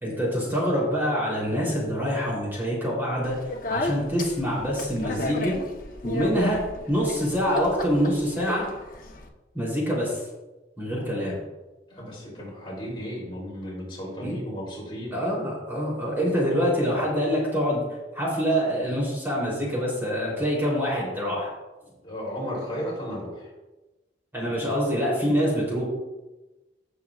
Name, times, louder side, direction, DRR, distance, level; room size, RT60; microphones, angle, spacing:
voice 1, 0.0-3.4 3.7-5.5 6.0-6.6 6.9-8.7 9.5-10.2 10.8-11.4 14.2-14.4 15.1-17.8 18.1-21.5 24.3-25.8, equal, 10° right, -5 dB, 3.3 m, -25 dB
Speech, 3.2-9.3, left 1 dB, 50° left, 1.0 m, -33 dB
voice 2, 11.9-15.2 22.0-23.5, equal, 30° left, -4 dB, 3.3 m, -34 dB
17.0 x 6.9 x 2.4 m, 1.1 s
head